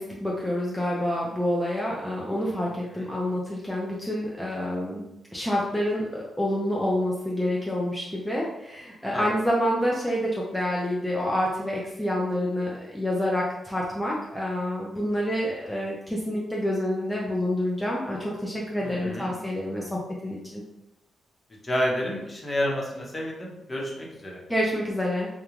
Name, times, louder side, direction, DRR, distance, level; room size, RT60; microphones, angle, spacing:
voice 1, 0.0-5.0 5.3-20.6 24.5-25.3, left 1 dB, 5° left, -4 dB, 0.5 m, -28 dB
voice 2, 18.8-19.3 21.6-24.4, left 1 dB, 30° left, -3 dB, 0.9 m, -30 dB
2.3 x 2.2 x 3.1 m, 0.92 s
supercardioid pair, 55°, 0 cm